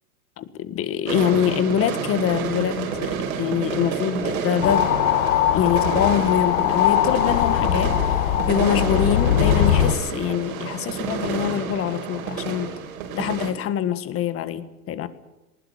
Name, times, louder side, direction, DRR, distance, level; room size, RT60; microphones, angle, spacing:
voice 1, 0.4-4.9 5.5-8.2 8.5-12.8 13.1-15.1, left 10 dB, 30° left, 13 dB, 1.7 m, -24 dB
sound 1, 1.1-13.5, right 6 dB, 65° right, 5.2 m, -29 dB
sound 2, 4.6-9.9, left 11 dB, 60° left, 1.7 m, -21 dB
20.0 x 19.5 x 9.4 m, 1.0 s
hypercardioid pair, 125°, 46 cm